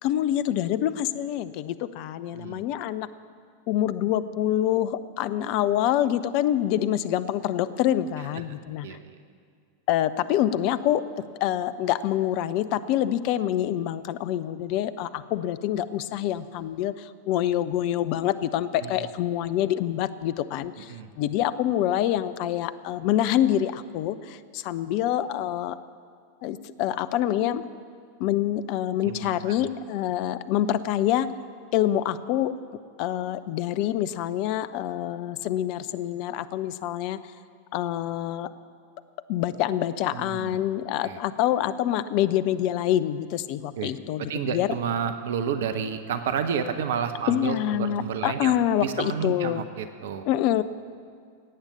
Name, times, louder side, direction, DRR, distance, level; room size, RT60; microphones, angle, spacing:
voice 1, 0.0-3.1 3.7-9.0 9.9-11.0 11.4-25.8 26.4-27.6 28.2-31.3 31.7-32.5 33.0-37.2 37.7-38.5 39.3-44.7 47.3-49.6 50.3-50.6, left 12 dB, 45° left, 14 dB, 0.5 m, -26 dB
voice 2, 8.5-9.1 18.8-19.0 20.9-21.1 29.0-29.7 40.1-40.6 41.0-41.2 43.8-43.9 44.2-50.3, right 7 dB, 55° right, 10 dB, 0.8 m, -31 dB
17.5 x 8.9 x 7.0 m, 2.2 s
figure-of-eight pair, 90°, 0 cm